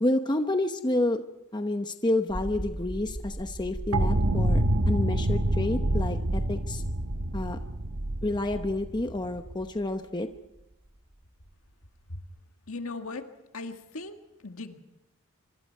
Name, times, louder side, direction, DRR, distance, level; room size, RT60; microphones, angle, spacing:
voice 1, 0.0-1.2 1.5-6.8 7.3-7.6 8.2-10.3, left 1 dB, 20° left, 6 dB, 0.9 m, -29 dB
sound 1, 2.3-12.4, right 1 dB, 20° right, 0.9 m, -42 dB
sound 2, 3.9-9.6, right 1 dB, 65° right, 1.3 m, -27 dB
voice 2, 12.7-13.3 13.5-14.8, left 3 dB, 70° left, 5 dB, 1.9 m, -38 dB
25.5 x 25.0 x 4.6 m, 0.92 s
head